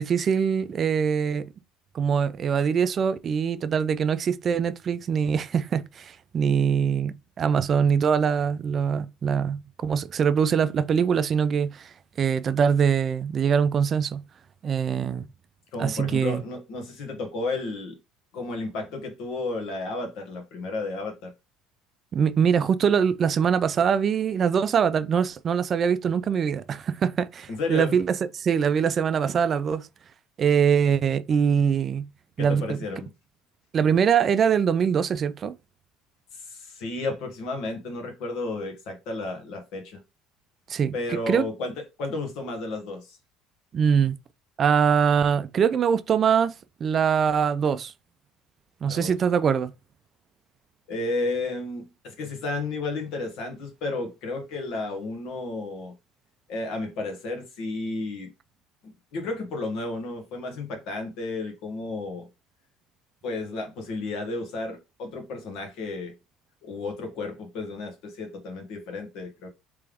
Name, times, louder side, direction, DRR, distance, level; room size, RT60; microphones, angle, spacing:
voice 1, 0.0-1.5 1.9-11.9 12.2-14.2 14.6-15.2 15.8-16.4 22.1-28.1 28.3-29.9 30.4-32.1 32.4-32.8 33.7-35.5 40.7-41.5 43.7-44.2 44.6-46.5 46.8-47.9 48.8-49.7, right 7 dB, 40° right, 0.4 m, -23 dB
voice 2, 15.7-18.0 18.3-21.3 27.5-28.0 32.4-33.1 36.3-40.0 40.9-43.2 48.9-49.2 50.9-55.9 56.5-58.3 58.8-62.3 63.2-66.1 66.6-69.5, left 3 dB, 65° left, 1.5 m, -32 dB
3.4 x 3.4 x 3.4 m
supercardioid pair, 110°, 0 cm